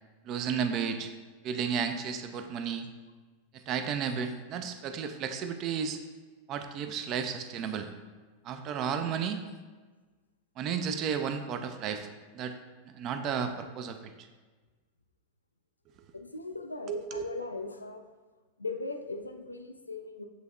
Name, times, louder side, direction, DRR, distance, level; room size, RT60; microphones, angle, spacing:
voice 1, 0.3-1.1 1.4-2.9 3.7-6.0 6.5-7.9 8.4-9.4 10.6-12.1 12.3-12.5 12.8-14.1 16.9-17.2, right 7 dB, 35° right, 8 dB, 0.4 m, -33 dB
voice 2, 16.1-18.0 18.6-20.3, left 3 dB, 85° left, 6 dB, 0.3 m, -39 dB
7.7 x 2.7 x 2.5 m, 1.3 s
figure-of-eight pair, 90°, 0 cm